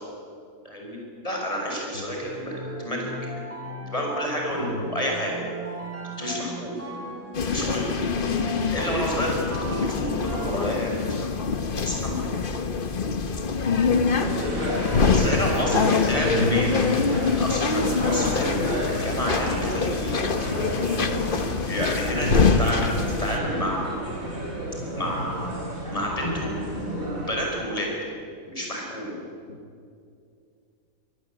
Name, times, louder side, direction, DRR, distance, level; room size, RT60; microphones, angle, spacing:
voice 1, 0.6-1.0 1.2-3.1 3.9-5.3 6.2-6.8 7.4-7.9 8.7-10.9 11.2-11.3 11.8-12.3 15.1-16.7 17.4-18.6 18.8-20.2 21.7-22.3 22.6-22.9 23.2-23.9 24.9-25.4 25.9-27.9 28.5-29.2, equal, 25° left, -1 dB, 6.4 m, -29 dB
sound 1, 2.2-11.4, right 1 dB, 10° right, 7.5 m, -37 dB
voice 2, 4.6-4.9 13.7-14.1 15.7-17.3 17.9-18.2 22.2-22.7 25.0-25.1 29.5-29.6, left 2 dB, 75° left, 3 dB, 1.9 m, -30 dB
sound 2, 7.3-23.4, left 5 dB, 40° left, 1.3 m, -25 dB
sound 3, 14.2-27.3, right 1 dB, 75° right, 4.9 m, -32 dB
25.0 x 19.0 x 8.9 m, 2.4 s
omnidirectional pair, 1.4 m